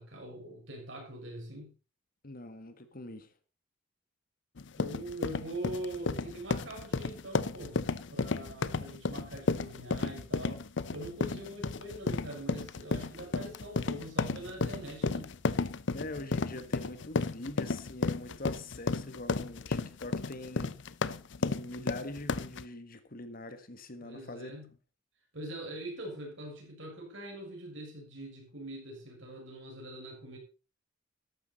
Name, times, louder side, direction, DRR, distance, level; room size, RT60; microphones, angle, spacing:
voice 1, 0.0-1.7 4.8-10.7 10.9-15.3 24.0-24.7 25.3-30.4, right 1 dB, 65° right, 6.6 m, -43 dB
voice 2, 2.2-3.3 15.9-20.7 21.4-24.8, left 2 dB, 45° left, 1.6 m, -43 dB
sound 1, 4.6-22.6, left 4 dB, 65° left, 0.7 m, -33 dB
13.5 x 11.5 x 4.2 m
head